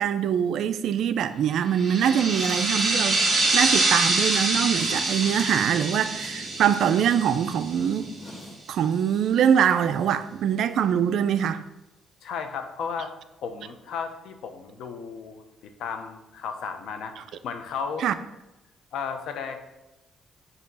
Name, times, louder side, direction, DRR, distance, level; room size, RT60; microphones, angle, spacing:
voice 1, 0.0-3.2 3.5-8.1 8.7-11.6 18.0-18.1, right 8 dB, 75° right, 12 dB, 0.4 m, -23 dB
sound 1, 1.8-8.1, right 2 dB, 45° right, 1.6 m, -25 dB
sound 2, 2.2-8.6, left 1 dB, 40° left, 1.8 m, -42 dB
voice 2, 12.2-13.1 13.4-15.4 15.8-17.1 17.4-18.0 18.9-19.6, left 6 dB, 80° left, 7 dB, 0.7 m, -34 dB
6.7 x 2.8 x 5.3 m, 0.96 s
cardioid pair, 90°, 0 cm